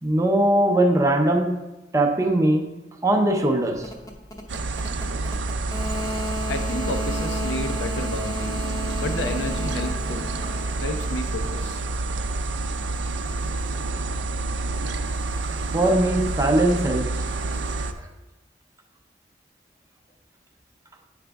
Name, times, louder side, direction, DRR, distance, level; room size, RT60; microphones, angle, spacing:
voice 1, 0.0-1.6 1.9-2.7 3.0-3.9 15.7-17.2, right 1 dB, 15° right, 4 dB, 0.5 m, -20 dB
cell phone interference, 3.7-11.6, left 1 dB, 20° left, 0.7 m, -34 dB
sound 1, 4.5-17.9, right 2 dB, 75° right, 0.5 m, -28 dB
voice 2, 6.5-10.2 10.8-11.8, left 1 dB, 70° left, 6 dB, 0.7 m, -31 dB
8.8 x 4.9 x 3.4 m, 1.0 s
head